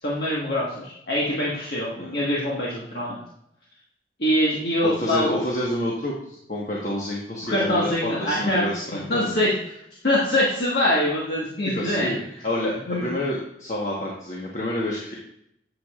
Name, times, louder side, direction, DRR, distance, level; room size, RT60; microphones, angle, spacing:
voice 1, 0.0-3.2 4.2-5.3 7.4-9.5 10.0-12.1 12.9-13.0, left 1 dB, 65° left, -6 dB, 1.5 m, -24 dB
voice 2, 4.8-9.3 11.7-15.1, left 1 dB, 45° left, -4 dB, 1.2 m, -29 dB
9.3 x 7.4 x 2.4 m, 0.77 s
head